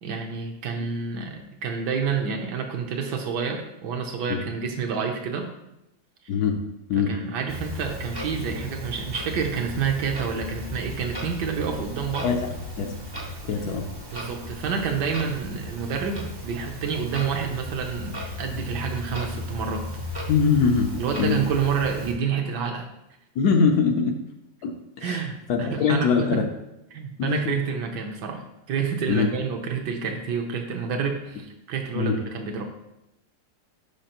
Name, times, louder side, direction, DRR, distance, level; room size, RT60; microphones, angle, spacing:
voice 1, 0.0-5.5 7.0-12.3 14.1-19.9 21.0-22.9 25.0-26.4 26.9-32.7, right 6 dB, 70° right, 3 dB, 1.3 m, -29 dB
voice 2, 6.3-6.6 6.9-7.1 12.2-12.9 13.5-13.8 20.3-21.4 23.3-24.2 24.6-26.5 27.2-27.6 29.1-29.3 31.9-32.2, left 5 dB, 70° left, 4 dB, 1.0 m, -23 dB
Clock, 7.5-22.1, left 1 dB, 30° right, 0.4 m, -35 dB
6.5 x 5.5 x 2.9 m, 0.87 s
omnidirectional pair, 2.0 m